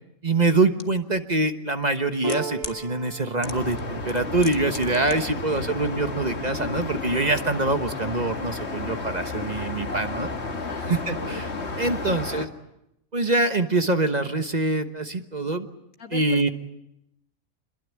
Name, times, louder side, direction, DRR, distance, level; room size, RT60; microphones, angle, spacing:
voice 1, 0.2-10.3 10.9-12.5 13.1-15.7 16.1-16.5, right 2 dB, 30° right, 8 dB, 1.2 m, -24 dB
sound 1, 0.8-0.9 1.8-2.8 3.4-3.8 4.1-5.1 5.4-5.5, left 3 dB, 30° left, 1.3 m, -37 dB
Piano, 2.2-9.2, right 3 dB, 70° right, 1.6 m, -40 dB
sound 2, 3.4-12.5, left 3 dB, 50° left, 2.1 m, -32 dB
voice 2, 10.5-10.9 11.6-12.2 16.0-16.5, left 7 dB, 80° left, 6 dB, 2.3 m, -41 dB
26.5 x 22.0 x 8.4 m, 0.82 s
omnidirectional pair, 1.5 m